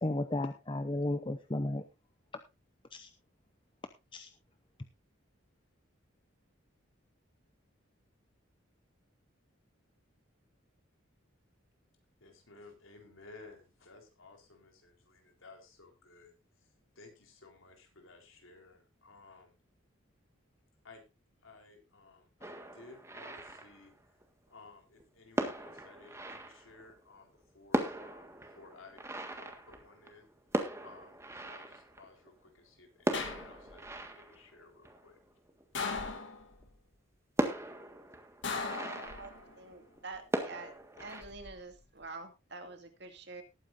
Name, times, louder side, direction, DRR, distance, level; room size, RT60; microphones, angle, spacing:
voice 1, 0.0-1.8 2.9-3.1 4.1-4.3, left 1 dB, 25° left, 9 dB, 0.7 m, -34 dB
voice 2, 12.2-16.3 17.0-19.6 20.8-21.0 21.4-23.9 24.5-29.0 29.4-30.3 30.8-35.2, left 3 dB, 80° left, 3 dB, 3.8 m, -56 dB
sound 1, 22.4-24.2 25.0-25.1 25.4-27.1 27.4-27.5 27.7-32.5 33.0-35.6 36.2-36.3 36.6-36.7 37.4-40.0 40.3-41.2, right 1 dB, 15° right, 1.6 m, -38 dB
sound 2, 33.1-33.9 35.8-36.7 38.4-39.6 41.0-41.5, left 4 dB, 60° left, 2.3 m, -38 dB
voice 3, 39.6-40.7 41.0-43.4, right 3 dB, 55° right, 6 dB, 2.3 m, -46 dB
19.5 x 9.2 x 2.6 m, 0.25 s
head